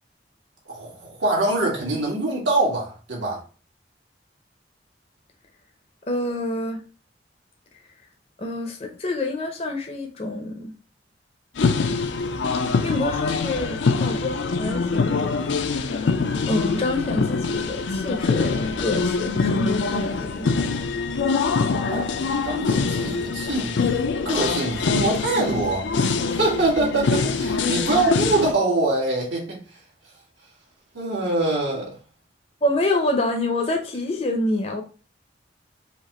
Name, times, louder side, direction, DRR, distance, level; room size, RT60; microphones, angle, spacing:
voice 1, 0.7-3.4 21.7-22.1 22.4-23.8 24.2-25.9 26.3-29.6 30.9-31.9, right 2 dB, 85° right, 2.1 m, -24 dB
voice 2, 6.1-6.8 8.4-10.7 12.8-20.5 32.6-34.8, left 2 dB, 35° left, 0.6 m, -27 dB
sound 1, 11.6-28.5, left 4 dB, 80° left, 0.5 m, -24 dB
5.0 x 2.4 x 4.1 m
head